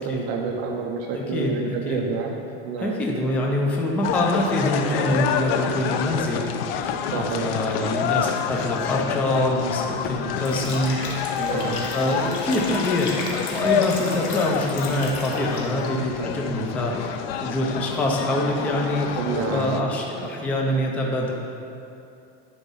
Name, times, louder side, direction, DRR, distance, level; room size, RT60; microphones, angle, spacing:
voice 1, 0.0-2.3 2.6-2.9 4.8-5.2 7.1-7.5 11.4-11.8 16.2-16.3 19.2-19.8, right 5 dB, 40° right, 2 dB, 0.6 m, -29 dB
voice 2, 1.1-2.0 2.8-6.5 7.1-11.2 11.5-19.1 19.5-21.3, left 1 dB, 5° left, -1 dB, 0.3 m, -25 dB
sound 1, 4.0-19.8, left 8 dB, 80° left, 0.6 m, -28 dB
Liquid, 10.4-15.9, left 3 dB, 50° left, 1.3 m, -35 dB
10.5 x 4.1 x 5.4 m, 2.6 s
supercardioid pair, 175°, 29 cm